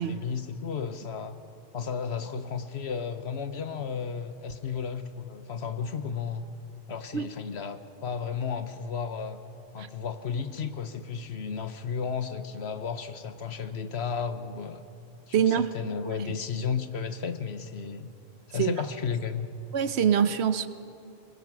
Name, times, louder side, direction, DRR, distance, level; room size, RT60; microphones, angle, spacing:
voice 1, 0.0-1.4 1.7-6.4 6.9-9.4 9.7-14.8 15.3-18.1 18.5-19.5, left 6 dB, 65° left, 10 dB, 1.3 m, -33 dB
voice 2, 15.3-15.7 18.6-18.8 19.7-20.7, right 8 dB, 70° right, 13 dB, 1.0 m, -24 dB
24.0 x 20.5 x 6.1 m, 2.5 s
omnidirectional pair, 1.2 m